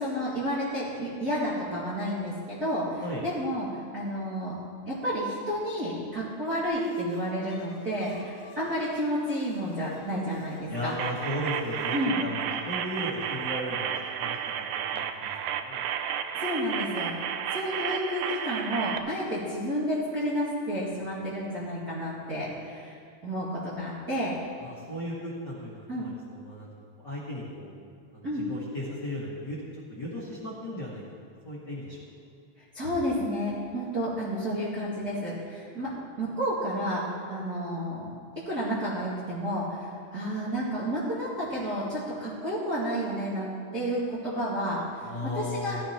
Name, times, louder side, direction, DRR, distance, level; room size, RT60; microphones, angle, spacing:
voice 1, 0.0-3.7 3.9-4.5 4.8-10.9 11.9-12.2 16.4-17.1 17.5-23.0 23.2-24.3 25.9-26.1 28.2-28.4 32.7-35.9 36.2-37.0 37.3-38.0 38.4-45.8, equal, 30° right, -10 dB, 2.1 m, -31 dB
Bowed string instrument, 6.6-12.1, left 1 dB, 65° left, 1.9 m, -42 dB
voice 2, 10.7-13.9 14.2-14.6 14.9-15.3 15.6-15.8 24.6-26.7 27.0-27.7 28.1-31.0 31.4-32.0 45.0-45.8, left 1 dB, 35° left, -9 dB, 2.0 m, -36 dB
sound 1, 11.0-19.0, right 9 dB, 85° right, 2.0 m, -32 dB
16.5 x 14.0 x 3.0 m, 2.3 s
omnidirectional pair, 4.6 m